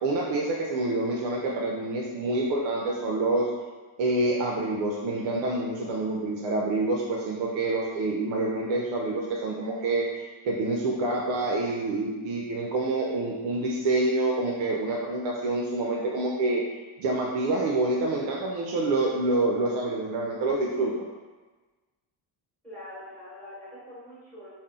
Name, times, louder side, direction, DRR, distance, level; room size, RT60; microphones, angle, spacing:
voice 1, 0.0-3.5 4.0-10.1 10.4-16.6 17.0-20.9, right 2 dB, 65° right, -2 dB, 0.6 m, -27 dB
voice 2, 22.6-24.5, left 1 dB, ahead, -13 dB, 1.3 m, -44 dB
2.6 x 2.0 x 3.6 m, 1.3 s
cardioid pair, 115°, 50 cm